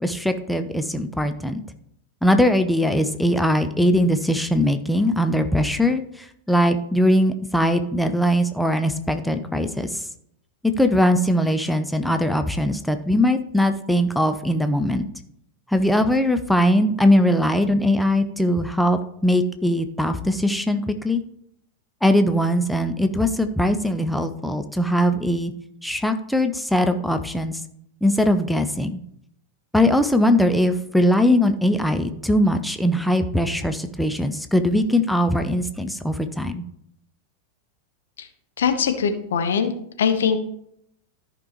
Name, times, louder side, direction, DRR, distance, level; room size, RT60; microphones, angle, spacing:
voice 1, 0.0-1.6 2.2-10.1 10.6-15.1 15.7-21.2 22.0-25.5 25.8-27.6 28.0-29.0 29.7-36.6, left 1 dB, ahead, 7 dB, 0.6 m, -21 dB
voice 2, 38.6-39.7 40.0-40.4, left 7 dB, 65° left, 7 dB, 1.0 m, -21 dB
13.5 x 5.1 x 3.1 m, 0.73 s
figure-of-eight pair, 90°, 0 cm